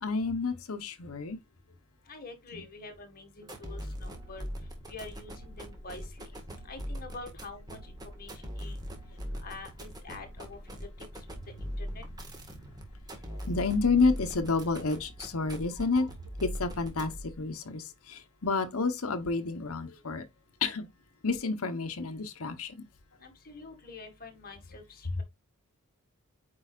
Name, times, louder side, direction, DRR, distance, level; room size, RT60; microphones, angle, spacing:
voice 1, 0.0-1.4 2.5-2.6 13.3-16.1 16.4-17.1 17.4-20.2 20.6-20.9 21.2-22.8, left 4 dB, 70° left, 1.0 m, -30 dB
voice 2, 2.1-4.4 4.9-6.3 6.7-7.8 8.2-8.3 8.6-8.8 9.4-10.8 11.6-12.0 23.2-25.2, left 3 dB, 40° left, 1.8 m, -46 dB
sound 1, 3.4-17.4, equal, 20° right, 1.7 m, -41 dB
8.7 x 4.8 x 2.5 m
head